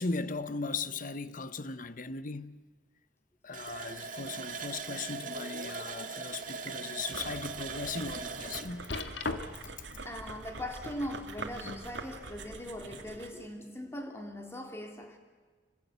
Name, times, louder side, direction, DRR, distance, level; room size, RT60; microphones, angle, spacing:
voice 1, 0.0-2.6 3.4-8.9, left 4 dB, 50° left, 1.0 m, -38 dB
Water tap faucet, 3.5-10.0 10.4-10.5 10.9-11.1, right 5 dB, 45° right, 2.1 m, -41 dB
sound 1, 5.1-5.8 6.3-6.4 7.0-7.1 8.9-9.8 11.1-11.9 12.8-12.9, left 3 dB, 80° left, 1.9 m, -39 dB
sound 2, 7.1-13.4, right 3 dB, 85° right, 2.8 m, -45 dB
voice 2, 9.7-15.2, left 1 dB, 15° left, 3.2 m, -41 dB
27.0 x 25.5 x 8.2 m
head